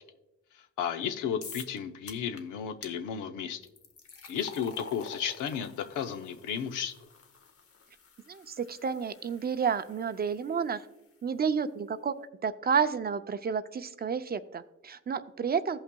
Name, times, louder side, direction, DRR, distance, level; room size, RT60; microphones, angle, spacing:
voice 1, 0.8-3.6 4.3-6.9, left 8 dB, 85° left, 7 dB, 0.7 m, -33 dB
sound 1, 1.4-1.8 2.1-2.4 2.8-2.9 3.6-10.8, left 5 dB, 50° left, 0.9 m, -48 dB
voice 2, 8.3-10.8 11.2-12.1 12.4-15.8, right 6 dB, 30° right, 11 dB, 0.5 m, -30 dB
16.5 x 5.6 x 2.2 m, 0.98 s
cardioid pair, 90°, 30 cm